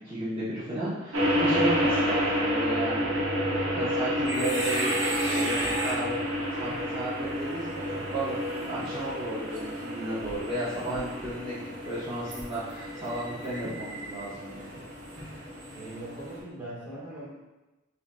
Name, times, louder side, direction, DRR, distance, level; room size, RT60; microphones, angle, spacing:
voice 1, 0.0-3.3 3.7-6.2 6.5-14.7, right 1 dB, 25° right, -13 dB, 1.0 m, -34 dB
sound 1, 1.1-16.4, equal, 85° right, 0.9 m, -30 dB
sound 2, 4.2-16.4, right 1 dB, 60° right, 1.1 m, -38 dB
voice 2, 15.7-17.3, right 1 dB, 10° right, -9 dB, 1.5 m, -40 dB
6.8 x 2.8 x 2.3 m, 1.1 s
head